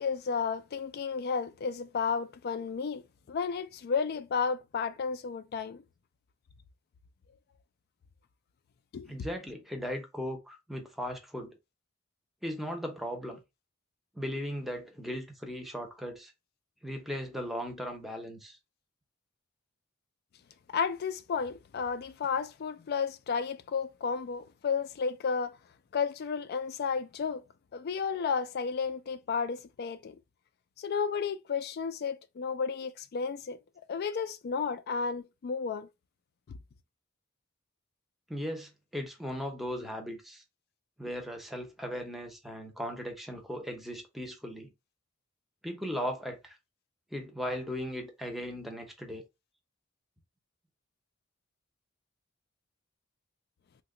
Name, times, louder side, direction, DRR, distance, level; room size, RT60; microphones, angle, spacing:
voice 1, 0.0-5.8 8.9-9.1 20.7-25.6 25.9-27.4 27.7-30.2 30.8-33.6 33.9-35.9, left 5 dB, 50° left, 0.3 m, -32 dB
voice 2, 9.1-11.6 12.4-13.4 14.1-16.3 16.8-18.6 38.3-40.4 41.0-44.7 45.6-46.6 47.1-49.2, equal, ahead, 0.6 m, -37 dB
2.8 x 2.2 x 3.7 m
head